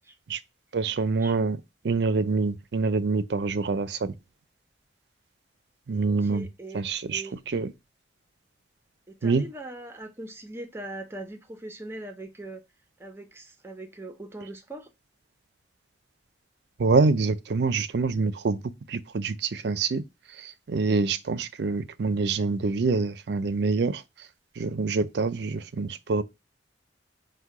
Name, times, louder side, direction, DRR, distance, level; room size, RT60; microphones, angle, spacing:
voice 1, 0.7-1.6 1.8-4.1 5.9-6.5 6.7-7.7 9.2-9.4 16.8-20.0 20.4-24.0 24.6-26.2, right 4 dB, 60° right, 0.4 m, -26 dB
voice 2, 6.0-6.8 7.1-7.4 9.1-12.6 13.0-14.9, right 1 dB, 15° right, 0.6 m, -41 dB
5.3 x 2.2 x 4.6 m
head